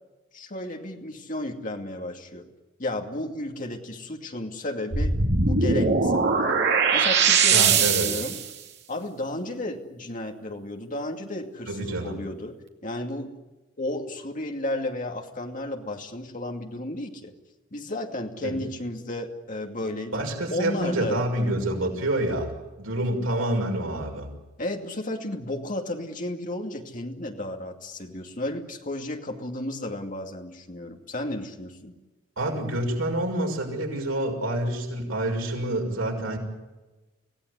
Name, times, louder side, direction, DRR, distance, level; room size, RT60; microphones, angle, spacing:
voice 1, 0.3-2.4 2.8-5.1 5.4-6.5 6.9-8.4 8.9-12.6 12.8-13.3 13.8-17.3 17.7-20.2 20.5-21.6 24.6-31.9, left 1 dB, 40° left, 2 dB, 2.5 m, -33 dB
sound 1, 4.9-8.5, right 5 dB, 55° right, 2.5 m, -21 dB
voice 2, 7.5-8.1 11.7-12.2 18.4-18.6 20.1-22.5 22.8-24.3 32.4-36.4, right 1 dB, 85° right, 1 dB, 6.2 m, -27 dB
26.0 x 17.0 x 9.8 m, 1.1 s
head